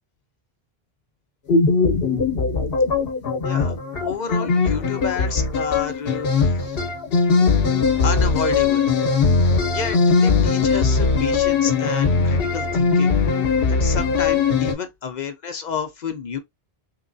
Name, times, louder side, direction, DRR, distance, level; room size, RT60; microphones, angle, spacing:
sound 1, 1.5-14.7, left 4 dB, 70° left, 1.0 m, -20 dB
voice 1, 3.4-6.6 8.0-8.9 9.7-13.1 13.7-16.4, left 6 dB, 55° left, 0.6 m, -30 dB
3.7 x 3.0 x 2.5 m
omnidirectional pair, 1.0 m